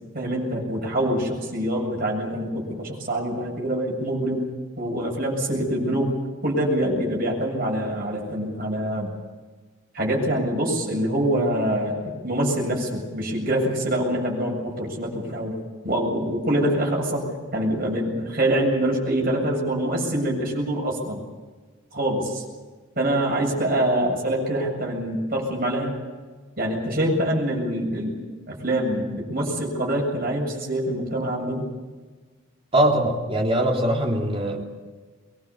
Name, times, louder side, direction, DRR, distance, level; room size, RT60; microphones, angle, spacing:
voice 1, 0.1-4.5 4.8-6.1 6.4-9.1 9.9-15.6 15.8-17.3 17.5-21.2 21.9-22.4 23.0-26.0 26.6-31.7, right 1 dB, 45° right, -1 dB, 7.5 m, -25 dB
voice 2, 32.7-34.6, right 1 dB, 25° right, 0 dB, 3.2 m, -21 dB
24.0 x 21.5 x 7.0 m, 1.4 s
head